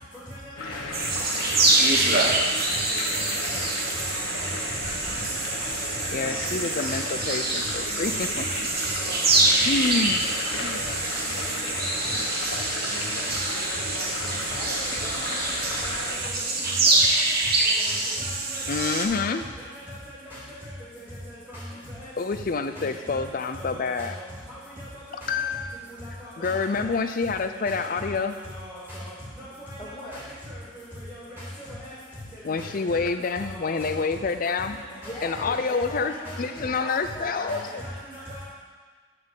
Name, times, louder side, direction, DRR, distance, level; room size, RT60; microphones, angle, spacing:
sound 1, 0.6-16.2, left 2 dB, 85° left, 1.3 m, -34 dB
sound 2, 0.9-19.1, right 2 dB, 45° right, 1.1 m, -25 dB
voice 1, 6.1-8.4 9.7-10.2 10.6-10.8 18.7-19.4 22.2-24.1 25.1-25.7 26.4-28.3 32.4-34.8 35.2-37.8, left 4 dB, 40° left, 9 dB, 0.4 m, -28 dB
voice 2, 6.9-7.4 8.4-8.5 9.0-9.2 10.1-10.2 13.3-13.4 13.8-14.3 17.1-17.2 17.9-19.4 23.1-23.2 26.4-26.5 27.7-28.1 28.5-28.7 31.6-31.8 35.0-35.1 35.8-35.9 36.6-36.8 37.5-38.4, equal, 10° right, -10 dB, 2.4 m, -39 dB
voice 3, 14.5-17.0 29.8-30.3 34.9-37.9, equal, 20° left, -6 dB, 2.0 m, -41 dB
9.9 x 4.3 x 7.1 m, 1.5 s
head